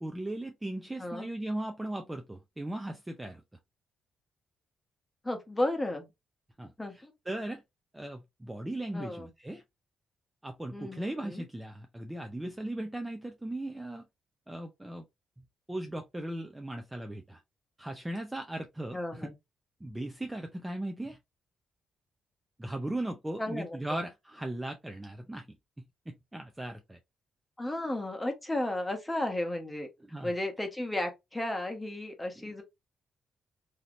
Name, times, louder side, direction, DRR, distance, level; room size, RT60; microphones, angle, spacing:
voice 1, 0.0-3.4 6.6-7.6 7.9-9.6 10.4-14.0 14.5-15.0 15.7-17.4 17.8-19.3 19.8-21.2 22.6-25.5 26.1-27.0 30.1-30.3 32.4-32.5, right 1 dB, 10° right, 0.4 m, -38 dB
voice 2, 5.2-6.1 6.8-7.1 8.9-9.3 10.7-11.4 18.9-19.3 23.4-24.0 27.6-29.9 30.2-32.6, left 1 dB, 10° left, 1.0 m, -34 dB
3.2 x 2.8 x 2.5 m
cardioid pair, 115°, 0 cm